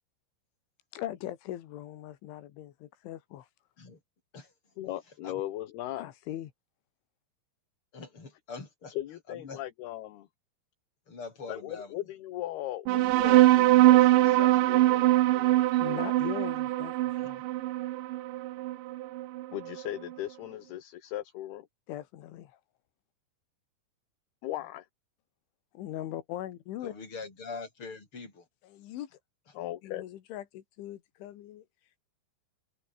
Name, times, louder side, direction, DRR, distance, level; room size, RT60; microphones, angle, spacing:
voice 1, 0.9-3.5 6.0-6.5 15.5-16.9 17.2-17.4 21.9-22.5 25.8-26.9 28.6-29.1 29.8-31.6, left 13 dB, 90° left, 4.2 m, -40 dB
voice 2, 4.8-6.1 8.9-10.3 11.5-15.9 19.5-21.7 24.4-24.9 29.5-30.0, left 14 dB, 65° left, 3.2 m, -38 dB
voice 3, 7.9-8.9 9.3-9.6 11.1-11.9 17.2-17.3 26.8-28.4, left 4 dB, 30° left, 6.4 m, -43 dB
sound 1, 12.9-19.8, right 16 dB, 80° right, 3.3 m, -23 dB
open air
omnidirectional pair, 5.3 m